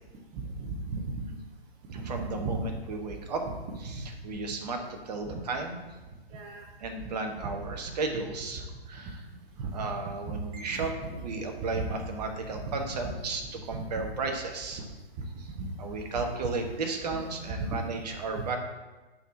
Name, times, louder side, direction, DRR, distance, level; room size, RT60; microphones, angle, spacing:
voice 1, 0.6-1.1 1.9-2.6 3.4-3.5 3.9-4.0 5.3-5.4 6.3-6.6 8.1-8.2 10.3-11.1 11.6-12.0 12.7-13.1 13.7-13.8 15.6-15.7 17.6-17.8 18.3-18.5, right 3 dB, 20° right, 2 dB, 0.8 m, -35 dB
voice 2, 2.0-3.4 3.8-4.8 5.0-5.8 6.8-9.2 9.7-14.8 15.8-18.6, right 3 dB, 40° right, 3 dB, 1.4 m, -34 dB
10.5 x 5.6 x 2.9 m, 1.2 s
figure-of-eight pair, 130°, 31 cm